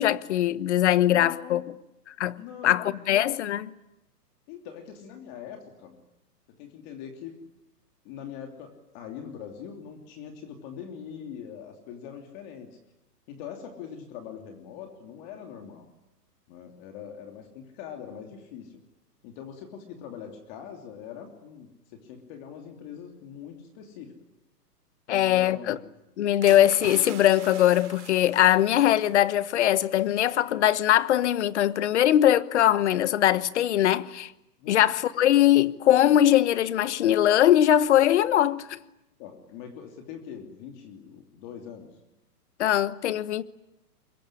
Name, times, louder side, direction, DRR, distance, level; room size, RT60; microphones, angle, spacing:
voice 1, 0.0-1.6 2.1-2.4 2.6-3.7 25.1-25.8 26.2-34.3 34.7-38.8 42.6-43.4, left 12 dB, 45° left, 1.2 m, -21 dB
voice 2, 1.1-1.6 2.4-3.1 4.5-6.0 6.5-7.3 8.0-12.8 13.3-15.9 16.5-18.7 19.2-24.1 25.1-25.8 34.6-34.8 39.2-41.9, left 8 dB, 30° left, 3.0 m, -42 dB
sound 1, 26.4-29.4 29.8-30.0, right 10 dB, 45° right, 3.6 m, -44 dB
25.5 x 22.0 x 9.9 m
hypercardioid pair, 160°, 48 cm